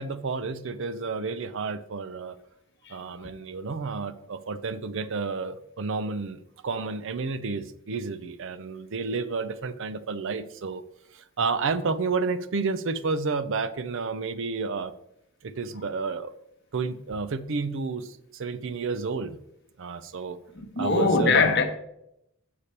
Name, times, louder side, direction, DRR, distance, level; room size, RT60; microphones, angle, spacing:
voice 1, 0.0-2.4 2.9-10.8 11.1-14.9 15.4-16.3 16.7-19.4 19.8-20.4 20.8-21.5, right 4 dB, 60° right, 0.5 m, -31 dB
voice 2, 20.5-21.6, left 3 dB, 55° left, 1.0 m, -22 dB
6.8 x 6.7 x 4.3 m
head